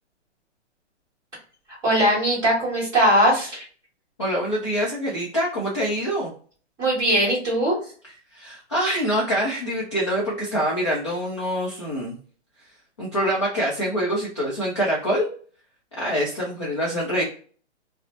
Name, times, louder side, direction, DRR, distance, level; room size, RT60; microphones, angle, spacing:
voice 1, 1.8-3.7 6.8-7.8, equal, 10° right, -7 dB, 1.1 m, -20 dB
voice 2, 4.2-6.3 8.3-12.2 13.0-15.3 16.0-17.2, equal, 25° left, -6 dB, 0.4 m, -25 dB
2.8 x 2.0 x 2.4 m, 0.43 s
hypercardioid pair, 165°, 35 cm